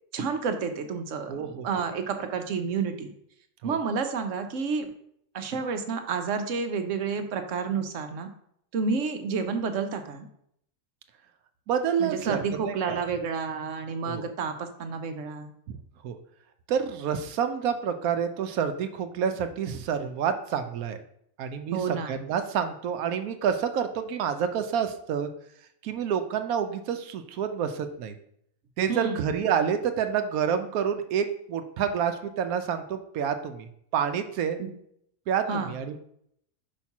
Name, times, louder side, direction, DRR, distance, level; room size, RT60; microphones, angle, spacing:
voice 1, 0.1-3.1 3.6-4.9 5.3-8.3 8.7-10.3 12.0-15.5 21.7-22.2 28.9-29.2 34.6-34.7 35.5-35.7, right 5 dB, 65° right, 7 dB, 1.1 m, -30 dB
voice 2, 1.3-1.7 3.6-3.8 11.7-13.0 14.1-14.3 15.7-15.8 16.0-16.2 16.7-21.0 21.4-25.3 25.8-28.1 28.8-34.6 35.3-36.0, right 7 dB, 90° right, 8 dB, 1.1 m, -28 dB
5.3 x 4.3 x 5.8 m, 0.70 s
omnidirectional pair, 1.5 m